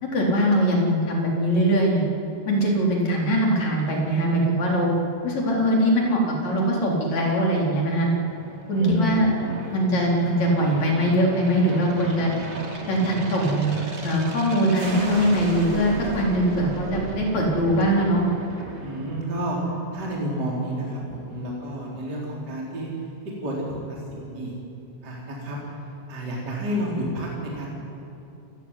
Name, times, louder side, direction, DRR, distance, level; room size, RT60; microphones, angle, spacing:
voice 1, 0.0-2.0 2.5-4.9 5.2-8.1 8.7-9.3 9.7-12.3 12.9-13.8 14.0-18.2, equal, 40° left, -1 dB, 5.0 m, -22 dB
Aircraft, 7.1-19.7, right 2 dB, 80° right, 0.6 m, -36 dB
voice 2, 8.8-9.8 18.8-22.9 23.4-24.5 25.0-25.7 26.1-27.7, equal, 20° right, -3 dB, 4.2 m, -30 dB
28.0 x 16.5 x 10.0 m, 2.8 s
omnidirectional pair, 5.5 m